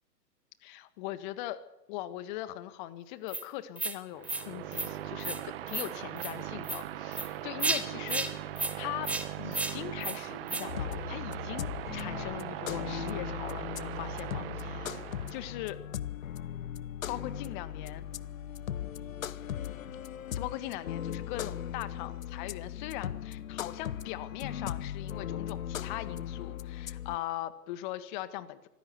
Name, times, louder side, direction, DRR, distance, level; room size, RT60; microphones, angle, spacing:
voice 1, 0.6-1.6 1.9-8.2 8.7-9.1 9.4-15.0 15.3-15.8 17.1-18.1 20.3-28.7, left 14 dB, 30° left, 12 dB, 1.6 m, -40 dB
sound 1, 3.3-3.4 3.8-3.9 4.2-4.4 4.7-4.9 5.2-5.4 5.7-5.9 6.2-6.3 6.6-6.8 7.1-7.3 7.6-7.8 8.1-8.3 8.6-8.7 9.0-9.2 9.5-9.7 10.0-10.2 10.5-10.6, right 2 dB, 5° right, 0.9 m, -32 dB
sound 2, 4.1-15.7, right 12 dB, 35° right, 1.7 m, -40 dB
sound 3, 10.7-27.2, left 10 dB, 55° left, 1.0 m, -38 dB
25.0 x 16.0 x 8.3 m, 0.90 s
figure-of-eight pair, 125°, 50 cm